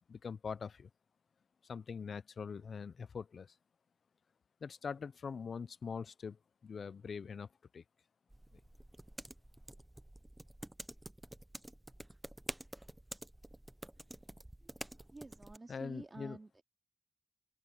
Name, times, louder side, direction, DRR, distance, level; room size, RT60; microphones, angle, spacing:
voice 1, 0.1-0.9 1.6-3.5 4.6-7.5 7.7-7.8 15.7-16.4, left 6 dB, 75° left, 0.4 m, -43 dB
sound 1, 8.3-15.6, right 1 dB, 10° right, 0.5 m, -49 dB
voice 2, 14.6-16.6, right 2 dB, 30° right, 2.3 m, -51 dB
open air
wide cardioid pair, 135°, 0 cm